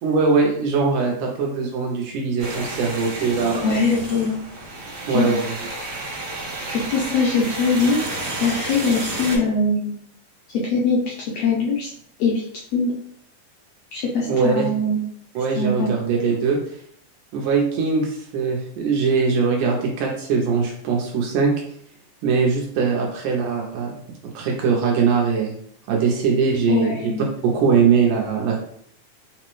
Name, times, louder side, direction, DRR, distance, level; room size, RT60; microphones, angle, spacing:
voice 1, 0.0-3.6 5.0-5.5 14.3-14.7 15.4-16.6 17.3-21.5 22.2-23.9 24.3-25.5 25.9-27.1 27.4-28.6, right 5 dB, 85° right, -1 dB, 2.1 m, -21 dB
sound 1, 2.4-9.4, right 2 dB, 65° right, 1.6 m, -31 dB
voice 2, 3.6-4.4 5.1-5.3 6.7-8.0 8.4-10.0 10.5-11.9 12.2-12.4 12.7-12.9 13.9-15.0 15.6-15.9 26.7-27.3, left 3 dB, 85° left, -4 dB, 1.4 m, -22 dB
5.0 x 2.0 x 3.0 m, 0.64 s
omnidirectional pair, 3.6 m